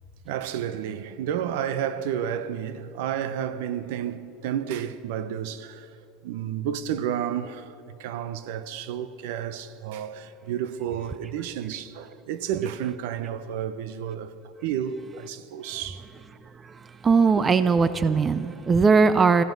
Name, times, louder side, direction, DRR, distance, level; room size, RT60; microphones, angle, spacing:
voice 1, 0.2-5.9 6.2-14.3 14.6-16.0 17.3-17.4, right 9 dB, 75° right, 0.8 m, -31 dB
voice 2, 17.0-19.4, right 5 dB, 20° right, 0.4 m, -19 dB
18.5 x 14.5 x 5.3 m
cardioid pair, 165°, 0 cm